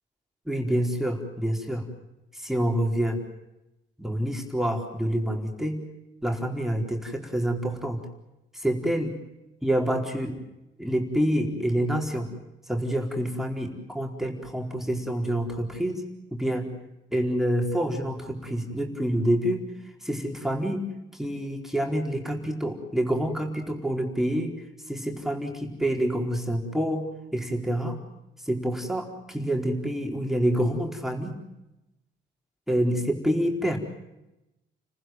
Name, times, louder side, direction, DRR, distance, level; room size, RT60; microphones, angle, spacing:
voice 1, 0.5-1.9 2.3-3.2 4.0-5.8 6.2-8.0 8.5-9.1 9.6-10.4 10.8-12.3 12.7-16.0 16.3-16.7 17.1-19.7 20.0-20.8 21.1-24.5 24.9-28.0 28.4-31.4 32.7-33.8, right 1 dB, ahead, 2 dB, 4.4 m, -27 dB
30.0 x 15.5 x 9.2 m, 0.94 s
cardioid pair, 90°, 20 cm